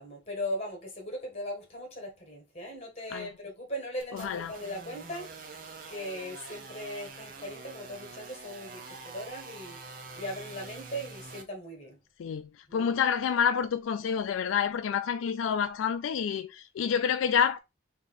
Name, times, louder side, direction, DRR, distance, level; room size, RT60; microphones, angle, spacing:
voice 1, 0.0-5.6 5.9-12.0 12.7-13.0, equal, 30° left, 1.7 m, -39 dB
sound 1, 4.0-11.4, right 4 dB, 45° right, 0.7 m, -46 dB
voice 2, 4.1-4.5 12.2-17.6, left 7 dB, 85° left, 0.3 m, -28 dB
3.3 x 2.8 x 3.9 m
head